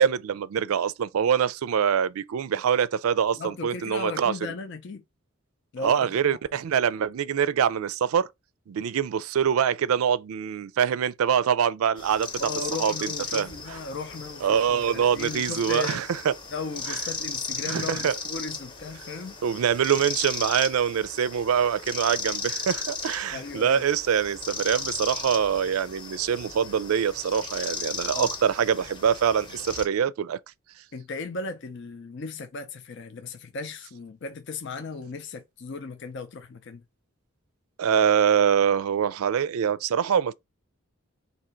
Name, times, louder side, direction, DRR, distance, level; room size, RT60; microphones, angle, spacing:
voice 1, 0.0-4.3 5.8-8.3 8.7-12.3 12.8-13.8 14.4-16.3 17.7-18.1 19.4-30.4 37.8-40.3, right 8 dB, 80° right, 0.4 m, -24 dB
voice 2, 3.4-5.0 5.7-6.1 12.4-16.1 16.5-19.4 23.3-23.8 28.1-28.3 30.9-36.8, left 4 dB, 55° left, 0.5 m, -36 dB
sound 1, 12.0-29.9, left 3 dB, 25° left, 0.8 m, -36 dB
3.8 x 2.8 x 4.3 m
head